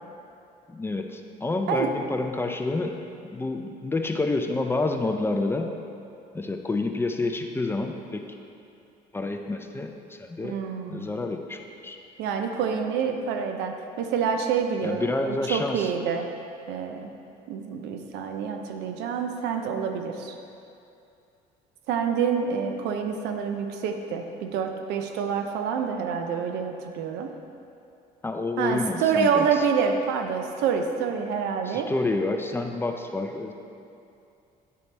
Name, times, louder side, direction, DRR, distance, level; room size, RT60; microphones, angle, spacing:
voice 1, 0.7-5.7 6.3-8.3 9.1-10.6 10.9-12.0 14.8-15.9 28.2-29.7 31.7-33.5, left 2 dB, 15° left, 4 dB, 0.4 m, -29 dB
voice 2, 10.4-11.1 12.2-16.3 16.7-17.1 17.5-20.3 21.9-27.3 28.6-31.9, right 6 dB, 85° right, 5 dB, 0.6 m, -27 dB
9.3 x 4.1 x 3.3 m, 2.6 s
cardioid pair, 110°, 17 cm